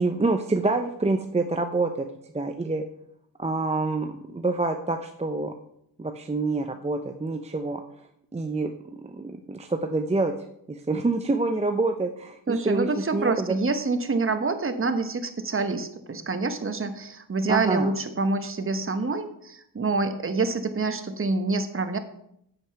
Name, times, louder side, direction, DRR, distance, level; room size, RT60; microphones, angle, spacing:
voice 1, 0.0-2.1 2.3-2.8 3.4-5.5 6.0-7.8 8.3-10.3 10.7-13.6 17.5-17.9, right 3 dB, 15° right, 6 dB, 0.7 m, -27 dB
voice 2, 12.5-22.0, right 3 dB, 35° right, 9 dB, 1.1 m, -27 dB
7.9 x 7.8 x 5.8 m, 0.73 s
cardioid pair, 90°, 37 cm